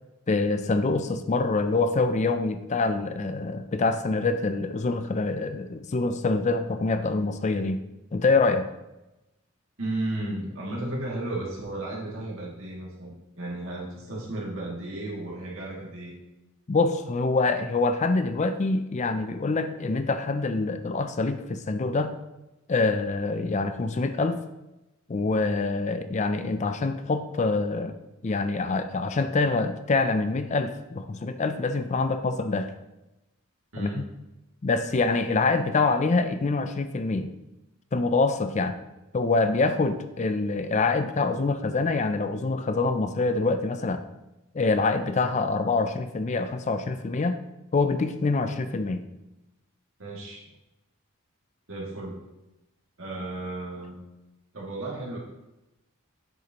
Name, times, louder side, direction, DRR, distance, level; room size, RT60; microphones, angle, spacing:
voice 1, 0.3-7.8 8.1-8.7 16.7-22.1 22.7-24.4 25.1-27.9 28.2-32.7 33.8-34.0 34.6-37.3 37.9-38.8 39.1-44.0 44.5-47.4 47.7-49.0, left 3 dB, 35° left, 10 dB, 0.4 m, -25 dB
voice 2, 9.8-16.2 33.7-34.0 50.0-50.5 51.7-52.2 53.0-54.0 54.5-55.2, right 1 dB, 65° right, -3 dB, 2.4 m, -34 dB
8.3 x 6.6 x 3.0 m, 0.96 s
head